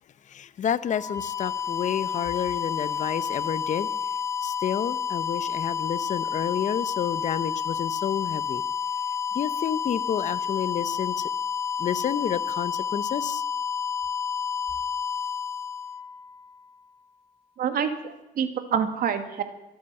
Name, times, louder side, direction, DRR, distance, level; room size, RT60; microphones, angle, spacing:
voice 1, 0.3-3.9 4.4-8.6 9.3-11.3 11.8-13.4, left 9 dB, 45° left, 16 dB, 0.7 m, -30 dB
sound 1, 0.8-16.6, left 7 dB, 15° left, 1.0 m, -30 dB
voice 2, 17.6-19.4, right 7 dB, 60° right, 8 dB, 2.1 m, -27 dB
23.5 x 8.6 x 6.9 m, 1.0 s
cardioid pair, 110°, 17 cm